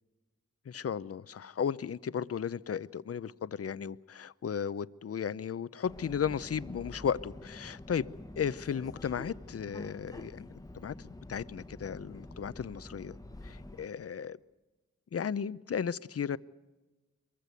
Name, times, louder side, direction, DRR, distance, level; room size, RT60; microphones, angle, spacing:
voice 1, 0.7-8.1 8.4-10.5 10.7-13.2 13.4-14.4 15.1-16.4, left 7 dB, 55° left, 18 dB, 0.6 m, -35 dB
Subway metro underground, 5.8-13.8, left 1 dB, 10° left, 1.0 m, -47 dB
22.5 x 15.0 x 9.4 m, 1.2 s
cardioid pair, 60°, 29 cm